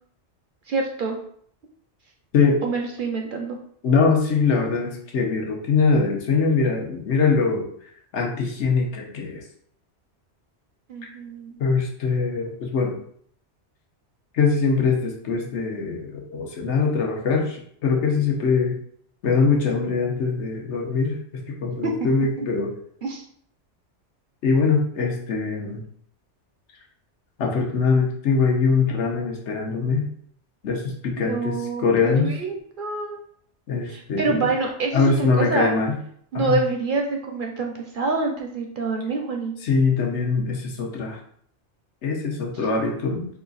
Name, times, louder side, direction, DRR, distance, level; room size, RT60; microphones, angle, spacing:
voice 1, 0.7-1.2 2.6-3.6 10.9-11.6 21.8-21.9 23.0-23.2 31.3-33.2 33.9-35.7 36.3-39.5, right 3 dB, 60° right, 2 dB, 0.6 m, -26 dB
voice 2, 3.8-7.7 8.1-9.4 11.6-13.0 14.3-18.7 19.2-21.2 21.6-22.7 24.4-25.8 27.4-30.1 30.6-32.3 33.7-34.5 34.9-36.0 36.3-36.6 39.6-41.2 42.0-43.3, left 4 dB, 80° left, 0 dB, 1.2 m, -22 dB
4.1 x 2.4 x 3.9 m, 0.62 s
omnidirectional pair, 1.2 m